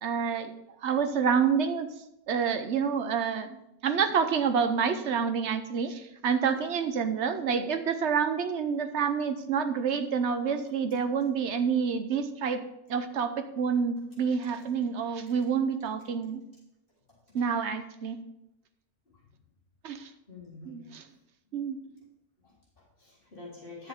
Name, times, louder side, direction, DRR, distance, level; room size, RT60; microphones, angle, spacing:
voice 1, 0.0-0.5 0.8-1.9 2.3-3.6 3.8-12.6 12.9-16.4 17.3-18.2 19.8-20.1 20.7-21.0 21.5-21.8, right 6 dB, 55° right, 8 dB, 0.9 m, -28 dB
voice 2, 20.3-20.9 22.4-23.9, left 3 dB, 35° left, -8 dB, 3.9 m, -47 dB
10.5 x 7.9 x 3.6 m, 0.87 s
omnidirectional pair, 1.6 m